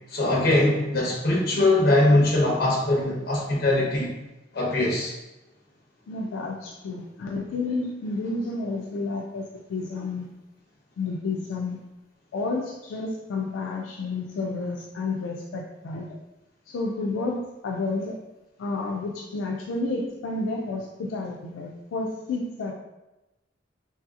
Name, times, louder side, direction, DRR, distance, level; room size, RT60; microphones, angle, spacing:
voice 1, 0.1-4.1 4.5-5.1, left 1 dB, 55° left, -3 dB, 0.8 m, -21 dB
voice 2, 6.1-10.3 11.0-11.8 12.3-16.1 16.7-18.2 18.6-22.7, left 3 dB, 90° left, 0 dB, 0.3 m, -30 dB
3.1 x 2.6 x 2.4 m, 0.99 s
head